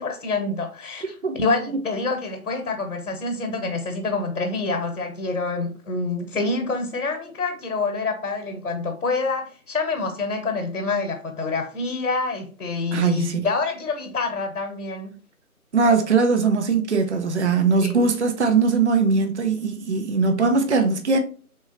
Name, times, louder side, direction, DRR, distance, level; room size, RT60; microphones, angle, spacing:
voice 1, 0.0-15.1 17.8-17.9, left 3 dB, 70° left, 1.0 m, -27 dB
voice 2, 12.9-13.4 15.7-21.2, right 4 dB, 50° right, 0.6 m, -20 dB
3.6 x 3.1 x 2.9 m
figure-of-eight pair, 160°, 44 cm